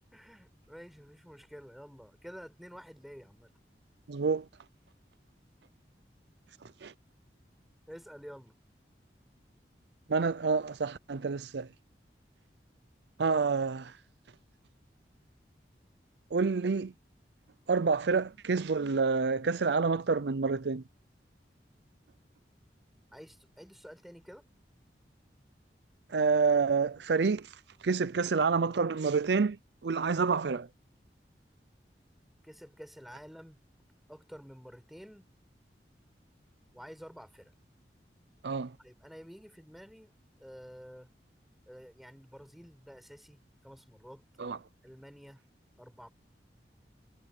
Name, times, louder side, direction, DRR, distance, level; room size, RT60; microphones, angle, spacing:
voice 1, 0.1-3.5 7.9-8.6 23.1-24.5 32.4-33.6 34.1-35.3 36.7-37.5 38.8-40.1 40.4-41.1 41.7-44.2 44.8-45.4 45.8-46.1, equal, ahead, 6.4 m, -50 dB
voice 2, 4.1-4.5 6.6-6.9 10.1-11.7 13.2-14.0 16.3-16.9 17.7-20.8 26.1-27.6 27.8-30.7 38.4-38.8 44.4-44.6, right 4 dB, 75° right, 0.5 m, -28 dB
head